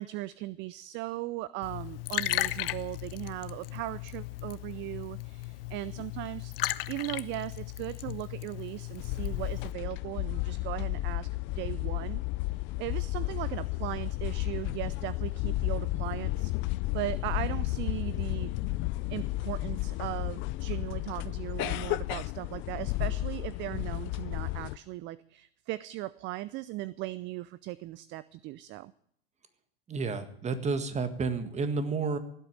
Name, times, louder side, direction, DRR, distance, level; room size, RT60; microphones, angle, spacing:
voice 1, 0.0-11.3 11.6-12.2 12.5-18.5 19.1-28.9, right 17 dB, 40° right, 19 dB, 0.5 m, -38 dB
Liquid, 1.6-9.7, left 17 dB, 65° left, 0.9 m, -36 dB
sound 1, 9.0-24.8, left 19 dB, 40° left, 0.5 m, -32 dB
voice 2, 29.9-32.2, right 4 dB, 20° right, 11 dB, 1.8 m, -31 dB
17.0 x 8.2 x 9.0 m, 0.68 s
hypercardioid pair, 110°, 30 cm